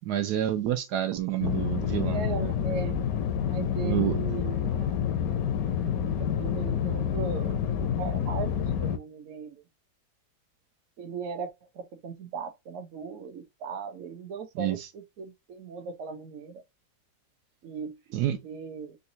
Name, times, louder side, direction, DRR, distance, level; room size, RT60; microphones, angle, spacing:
voice 1, 0.1-2.2 3.8-4.2 14.6-14.9 18.1-18.4, right 11 dB, 80° right, 1.2 m, -28 dB
sound 1, 1.4-9.0, left 8 dB, 70° left, 1.0 m, -28 dB
voice 2, 2.1-3.0 3.4-5.0 6.2-9.6 11.0-11.5 11.7-16.6 17.6-17.9 18.2-19.0, right 5 dB, 55° right, 1.0 m, -38 dB
4.0 x 2.3 x 2.6 m
omnidirectional pair, 1.7 m